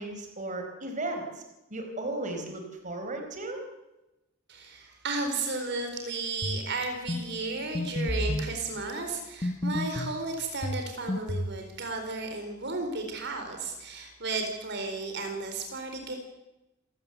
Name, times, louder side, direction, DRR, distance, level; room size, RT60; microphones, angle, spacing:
voice 1, 0.0-1.4 1.7-3.6, right 2 dB, 40° right, 4 dB, 4.4 m, -35 dB
voice 2, 4.5-16.2, right 3 dB, 55° right, 4 dB, 4.3 m, -34 dB
sound 1, 6.4-6.7 7.1-7.2 7.7-8.5 9.4-10.2 10.6-11.6, left 1 dB, 30° left, 1.1 m, -30 dB
28.0 x 17.0 x 8.2 m, 0.98 s
head